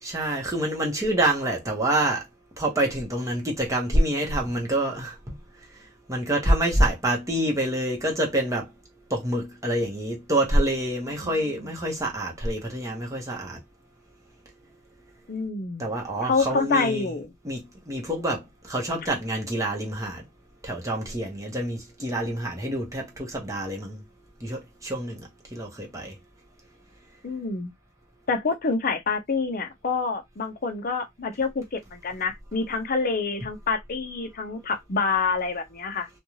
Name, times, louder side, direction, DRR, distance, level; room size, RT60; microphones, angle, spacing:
voice 1, 0.0-2.3 2.6-5.2 6.1-8.7 9.1-13.6 15.8-17.1 17.4-20.2 20.6-24.0 24.4-26.1, right 1 dB, 15° right, 0.8 m, -26 dB
voice 2, 11.2-11.7 15.3-15.9 16.2-17.3 27.2-27.7 28.3-36.1, left 4 dB, 45° left, 0.6 m, -27 dB
2.5 x 2.2 x 3.1 m
head